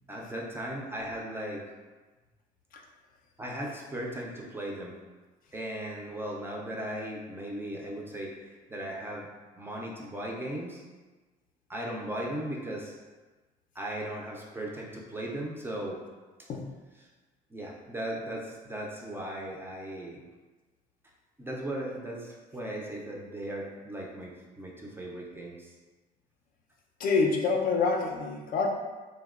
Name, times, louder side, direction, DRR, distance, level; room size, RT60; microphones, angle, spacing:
voice 1, 0.1-1.6 3.4-5.0 5.5-8.3 8.7-9.3 9.6-10.8 11.7-13.0 13.8-16.0 17.5-20.2 21.4-25.7, right 1 dB, 15° right, -2 dB, 0.3 m, -37 dB
voice 2, 27.0-28.7, left 4 dB, 55° left, 1 dB, 0.4 m, -26 dB
2.9 x 2.1 x 2.3 m, 1.3 s
cardioid pair, 110°, 17 cm